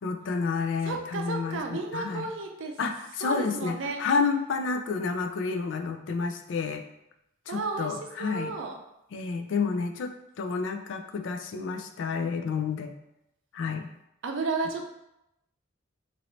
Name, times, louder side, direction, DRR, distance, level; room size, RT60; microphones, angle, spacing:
voice 1, 0.0-2.3 2.8-6.8 7.5-8.5 9.1-12.9 13.5-13.9, left 5 dB, 65° left, 5 dB, 0.3 m, -30 dB
voice 2, 0.8-2.8 3.2-4.0 7.5-8.8 14.2-14.8, right 3 dB, 75° right, 3 dB, 0.5 m, -33 dB
3.0 x 2.6 x 3.0 m, 0.84 s
head